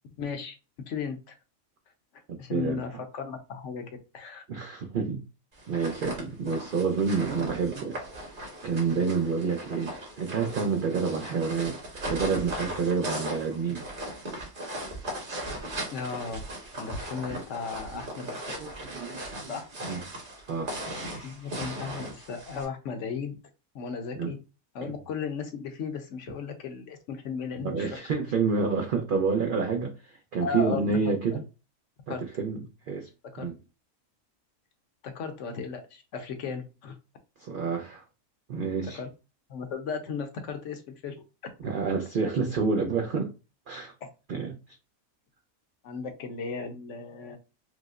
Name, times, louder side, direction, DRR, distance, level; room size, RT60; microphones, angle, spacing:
voice 1, 0.2-0.5 0.9-1.3 2.4-3.9 4.1-4.4 15.9-16.4 16.8-18.5 19.5-19.7 21.2-23.3 23.7-24.4 24.7-27.9 30.4-30.8 32.1-32.2 33.3-33.5 35.0-37.0 38.9-39.1 39.5-41.1 44.0-44.1 45.8-47.4, left 5 dB, 65° left, 0.9 m, -35 dB
voice 2, 2.3-2.8 4.5-5.2 5.7-8.4 8.6-13.8 17.9-18.0 18.6-19.5 19.8-20.0 20.5-20.8 24.2-24.3 27.6-31.4 32.2-32.6 32.9-33.1 33.4-33.6 37.4-38.0 38.5-39.0 41.6-43.3 43.7-43.9 44.3-44.6, right 5 dB, 80° right, 0.4 m, -29 dB
sound 1, 5.6-22.7, right 1 dB, 40° right, 1.2 m, -38 dB
4.8 x 2.0 x 2.3 m
omnidirectional pair, 1.5 m